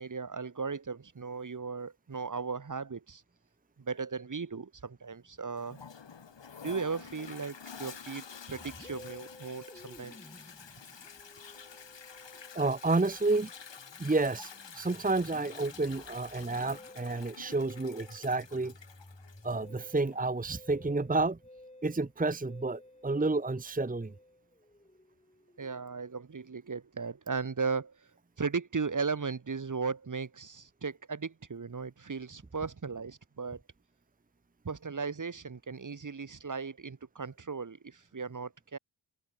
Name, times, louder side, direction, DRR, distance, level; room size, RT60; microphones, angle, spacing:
voice 1, 0.0-3.2 3.8-5.8 6.6-10.3 25.6-28.0 28.4-33.6 34.6-38.8, right 5 dB, 35° right, 1.6 m, -36 dB
Toilet flush, 5.6-20.2, left 6 dB, 60° left, 3.0 m, -49 dB
Musical instrument, 8.5-26.1, left 1 dB, 15° left, 4.2 m, -55 dB
voice 2, 12.5-13.5 14.0-18.7 19.4-21.4 21.8-24.1, right 3 dB, 15° right, 1.2 m, -30 dB
cardioid pair, 45°, 50 cm